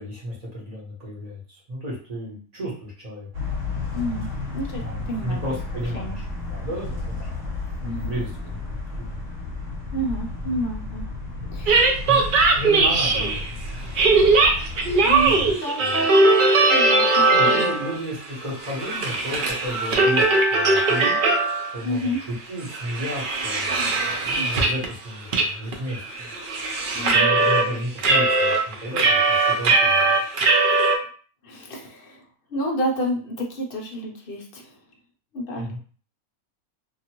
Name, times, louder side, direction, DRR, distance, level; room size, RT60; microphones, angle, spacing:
voice 1, 0.0-3.3 4.8-7.3 7.8-8.6 9.0-9.2 11.4-11.6 12.1-12.3 12.5-13.5 15.2-15.9 17.3-21.2 21.7-26.3 26.9-30.2 35.5-35.8, equal, 30° right, -5 dB, 1.1 m, -33 dB
sound 1, 3.3-15.5, left 3 dB, 60° right, 1.4 m, -32 dB
voice 2, 3.9-4.3 4.5-5.6 5.9-6.2 7.8-8.2 9.9-11.1 11.5-12.0 15.0-15.8 16.6-17.6 21.8-22.2 24.4-24.5 26.9-27.3 30.7-30.9 31.4-32.2 32.5-34.7 35.3-35.8, equal, 60° left, 0 dB, 0.6 m, -30 dB
sound 2, 11.7-13.5 14.0-18.0 18.3-21.8 22.1-22.2 22.6-24.9 25.3-25.5 25.7-27.7 28.0-31.0, right 3 dB, 90° right, 0.4 m, -20 dB
2.8 x 2.5 x 2.9 m, 0.42 s
omnidirectional pair, 1.6 m